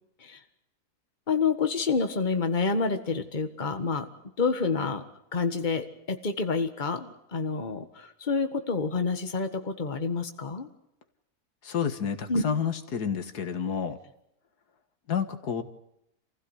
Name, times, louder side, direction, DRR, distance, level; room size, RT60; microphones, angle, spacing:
voice 1, 1.3-4.1 4.4-5.0 5.3-10.7 12.3-12.4, left 4 dB, 30° left, 7 dB, 1.7 m, -28 dB
voice 2, 11.6-14.0 15.1-15.6, left 7 dB, 85° left, 9 dB, 2.1 m, -29 dB
27.5 x 16.0 x 8.2 m, 0.83 s
omnidirectional pair, 1.7 m